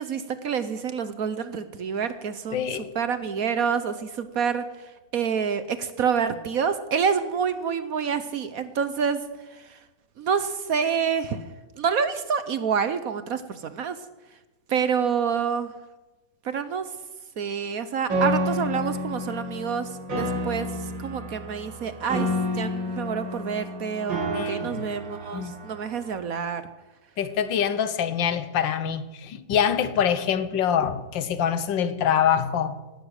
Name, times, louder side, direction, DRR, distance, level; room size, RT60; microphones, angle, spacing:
voice 1, 0.0-9.2 9.5-9.8 10.2-11.5 11.8-14.0 14.7-15.7 16.4-16.9 17.4-22.3 22.5-26.6, right 6 dB, 60° right, 1.1 m, -27 dB
voice 2, 2.5-2.9 24.3-24.8 25.3-25.5 27.2-32.7, left 8 dB, 80° left, 1.7 m, -25 dB
Piano, 18.1-26.1, equal, 80° right, 4.1 m, -30 dB
18.0 x 12.5 x 6.5 m
omnidirectional pair, 2.0 m